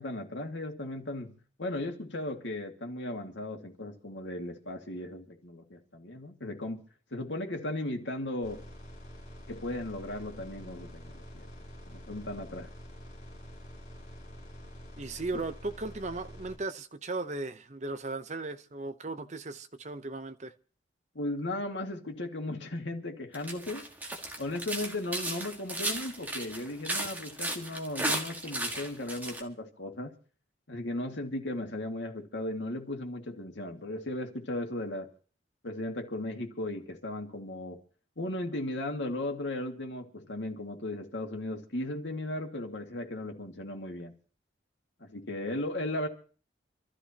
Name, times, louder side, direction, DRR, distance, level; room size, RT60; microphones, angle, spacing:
voice 1, 0.0-6.8 7.1-8.7 9.5-11.5 11.9-12.7 15.3-15.4 21.1-23.9 24.4-30.1 30.7-35.1 35.6-37.8 38.2-44.1 45.0-46.1, left 1 dB, 80° left, 2.1 m, -36 dB
sound 1, 8.4-16.6, equal, 40° left, 6.8 m, -47 dB
voice 2, 15.0-20.5, right 3 dB, 40° right, 0.8 m, -37 dB
sound 2, 23.3-29.4, right 1 dB, 10° right, 1.7 m, -34 dB
27.0 x 13.5 x 2.9 m
head